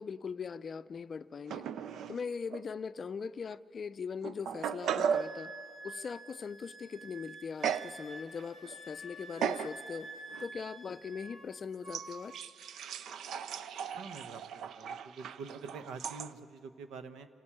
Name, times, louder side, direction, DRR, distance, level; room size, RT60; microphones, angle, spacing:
voice 1, 0.0-1.7 2.1-5.5 5.8-10.1 10.4-12.4, left 5 dB, 40° left, 14 dB, 0.5 m, -40 dB
sound 1, 1.5-2.2 2.5-2.6 3.5-3.6 4.2-5.4 7.6-8.0 8.4-8.8 9.4-9.7 10.3-10.5 11.9-16.3, right 7 dB, 75° right, 0.5 m, -36 dB
Wind instrument woodwind instrument, 5.1-11.5 11.8-12.5, right 2 dB, 25° right, 1.9 m, -49 dB
voice 2, 14.0-17.3, right 4 dB, 90° right, 10 dB, 1.1 m, -46 dB
27.0 x 13.0 x 8.8 m, 2.4 s
cardioid pair, 125°, 0 cm